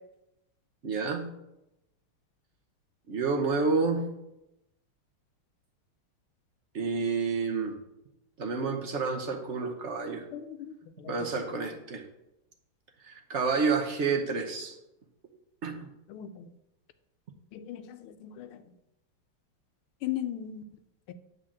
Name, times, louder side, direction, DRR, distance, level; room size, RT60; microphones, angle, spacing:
voice 1, 0.8-1.3 3.1-4.1 6.7-7.8 8.4-10.2 11.1-12.0 13.0-14.7 15.6-15.9, right 4 dB, 55° right, 3 dB, 0.7 m, -29 dB
voice 2, 10.3-10.7 11.0-11.1 16.1-16.5 17.5-18.6 20.0-20.6 21.1-21.2, left 11 dB, 85° left, 10 dB, 1.5 m, -37 dB
9.6 x 3.8 x 7.2 m, 0.90 s
omnidirectional pair, 2.3 m